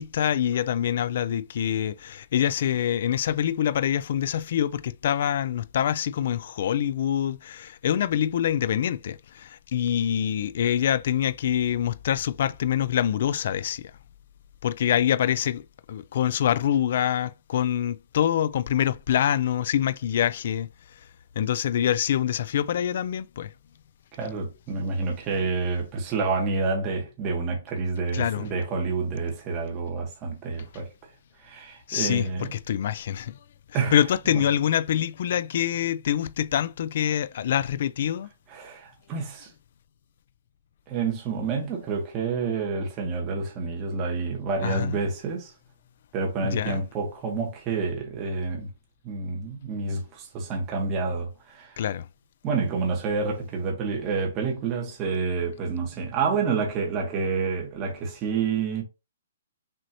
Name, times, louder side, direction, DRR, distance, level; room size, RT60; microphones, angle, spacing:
voice 1, 0.0-13.9 14.6-15.6 15.9-20.7 21.4-23.5 28.1-28.4 31.9-33.4 33.9-38.3 44.6-45.0 46.4-46.8 51.8-52.1, left 10 dB, 45° left, 0.3 m, -25 dB
voice 2, 24.2-30.9 31.4-32.5 33.7-34.0 34.3-34.4 38.5-39.5 40.9-45.5 46.1-48.7 49.0-51.8 52.4-58.8, right 4 dB, 20° right, 1.2 m, -28 dB
6.1 x 2.7 x 2.8 m
hypercardioid pair, 170°, 0 cm